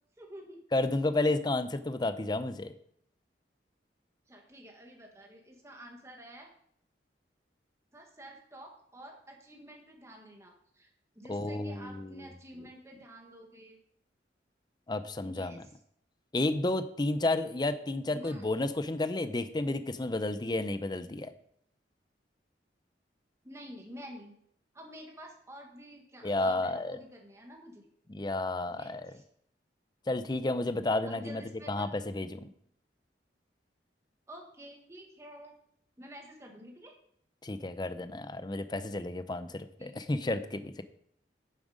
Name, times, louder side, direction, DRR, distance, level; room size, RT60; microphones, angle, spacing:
voice 1, 0.2-0.6 4.3-6.5 7.9-10.9 11.1-13.8 15.2-15.8 18.1-18.4 23.4-24.3 24.7-27.9 28.7-29.2 31.0-31.9 34.3-35.5 36.0-36.9 39.8-39.9, equal, 15° right, 1 dB, 1.5 m, -49 dB
voice 2, 0.7-2.7 11.3-12.3 14.9-15.6 16.3-21.3 26.2-27.0 28.1-29.1 30.1-31.4 31.7-32.5 37.4-40.8, left 2 dB, 25° left, 11 dB, 0.5 m, -31 dB
9.2 x 7.4 x 5.0 m, 0.68 s
head